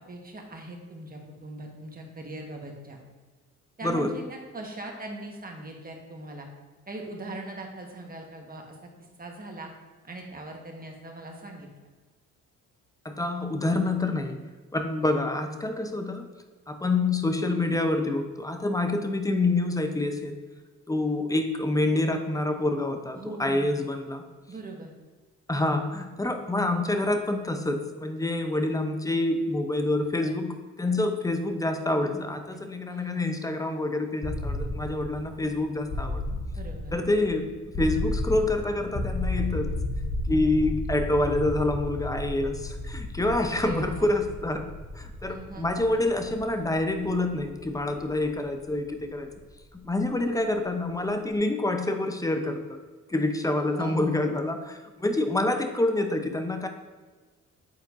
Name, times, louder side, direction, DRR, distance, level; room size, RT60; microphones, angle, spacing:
voice 1, 0.1-3.0 3.8-6.5 6.9-8.9 9.2-9.7 10.0-11.7 23.1-23.8 24.5-24.9 32.5-32.6 32.9-33.3 36.6-37.0 43.5-44.3 45.3-45.7 53.7-54.2, right 2 dB, 25° right, 1 dB, 1.4 m, -40 dB
voice 2, 13.0-14.4 14.7-16.3 16.7-20.4 20.9-24.2 25.5-36.4 36.9-37.5 37.8-39.7 40.3-44.6 44.9-49.3 49.7-52.8 53.1-56.7, left 2 dB, 10° left, 6 dB, 0.7 m, -27 dB
sound 1, 34.2-50.1, left 1 dB, 30° left, 1.0 m, -34 dB
8.4 x 4.3 x 2.6 m, 1.4 s
supercardioid pair, 65°, 35 cm